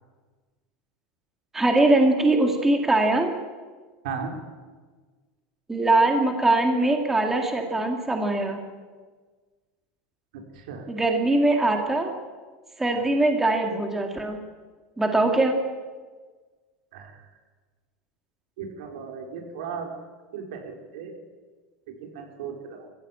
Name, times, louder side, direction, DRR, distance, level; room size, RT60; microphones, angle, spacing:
voice 1, 1.5-3.3 5.7-8.6 10.9-12.1 12.8-14.4 15.0-15.6, right 2 dB, 5° right, 3 dB, 1.9 m, -22 dB
voice 2, 18.6-19.9 20.3-21.1 22.0-22.9, right 6 dB, 80° right, 3 dB, 4.5 m, -36 dB
21.5 x 15.5 x 8.7 m, 1.4 s
supercardioid pair, 165°, 5 cm